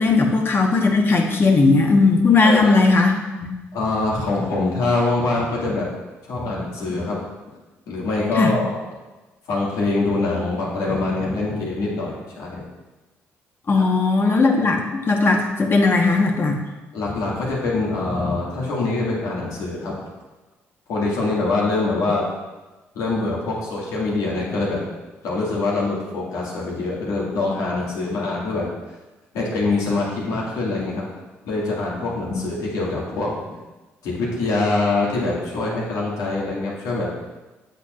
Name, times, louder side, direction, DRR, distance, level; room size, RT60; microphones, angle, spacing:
voice 1, 0.0-3.6 8.4-8.5 13.7-14.8 15.1-16.6 32.3-32.4, left 3 dB, 40° left, 2 dB, 1.3 m, -17 dB
voice 2, 2.4-2.7 3.7-5.9 6.3-7.2 7.9-8.8 9.5-12.6 13.7-13.8 16.9-20.0 20.9-22.3 22.9-24.8 25.2-28.7 29.3-31.0 31.4-33.3 34.0-37.1, left 3 dB, 75° left, -4 dB, 2.1 m, -24 dB
8.0 x 6.8 x 2.6 m, 1.2 s
supercardioid pair, 60°, 6 cm